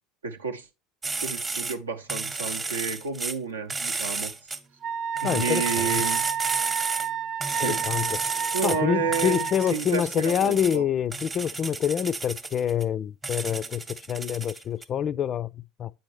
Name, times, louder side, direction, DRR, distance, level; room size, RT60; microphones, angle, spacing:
voice 1, 0.2-0.7 1.2-4.3 5.2-6.2 7.5-7.8 8.5-10.8, right 5 dB, 85° right, 0.7 m, -31 dB
sound 1, 1.0-1.8 2.1-3.4 3.7-4.6 5.2-7.1 7.4-8.8 9.1-10.8 11.1-12.8 13.2-14.8, right 3 dB, 20° right, 0.8 m, -32 dB
Wind instrument woodwind instrument, 4.8-9.7, right 9 dB, 45° right, 0.4 m, -30 dB
voice 2, 5.2-6.0 7.6-15.9, left 9 dB, 40° left, 0.3 m, -27 dB
8.8 x 4.2 x 3.1 m
hypercardioid pair, 75°, 0 cm